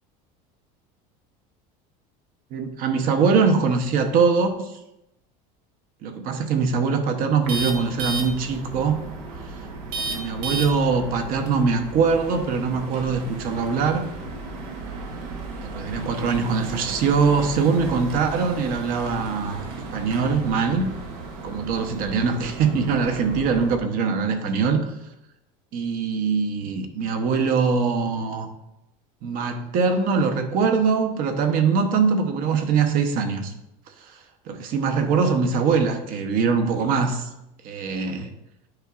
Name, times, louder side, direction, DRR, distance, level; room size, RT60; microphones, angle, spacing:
voice 1, 2.5-4.7 6.0-9.0 10.1-14.1 15.6-19.6 19.9-20.9 21.4-24.9 25.7-28.5 29.2-33.5 34.1-34.2 34.5-37.3 37.6-38.3, right 5 dB, 50° right, 7 dB, 0.9 m, -22 dB
sound 1, 7.4-23.8, right 3 dB, 85° right, 1.2 m, -34 dB
9.8 x 4.6 x 2.5 m, 0.88 s
cardioid pair, 150°, 19 cm